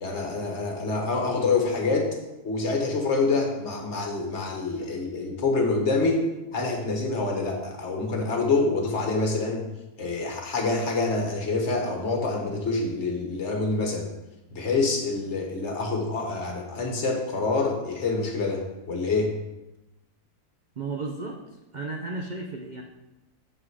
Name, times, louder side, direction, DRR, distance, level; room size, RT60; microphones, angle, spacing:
voice 1, 0.0-2.2 2.4-6.2 6.5-9.7 10.0-14.1 14.5-19.3, left 3 dB, 45° left, 1 dB, 1.5 m, -26 dB
voice 2, 20.8-21.4 21.7-22.8, right 3 dB, 80° right, 1 dB, 0.4 m, -33 dB
7.4 x 5.9 x 4.8 m, 1.0 s
omnidirectional pair, 1.7 m